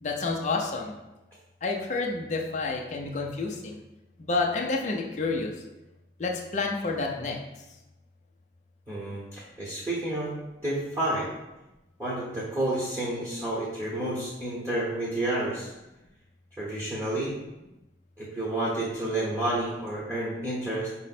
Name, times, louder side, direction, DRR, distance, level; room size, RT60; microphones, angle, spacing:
voice 1, 0.0-0.9 1.6-3.8 4.2-5.5 6.2-7.4, left 3 dB, 40° left, 0 dB, 0.4 m, -29 dB
voice 2, 8.9-10.3 10.6-11.3 12.0-15.7 16.6-17.3 18.2-20.9, right 1 dB, 15° right, -8 dB, 1.0 m, -30 dB
5.1 x 2.1 x 4.2 m, 0.98 s
head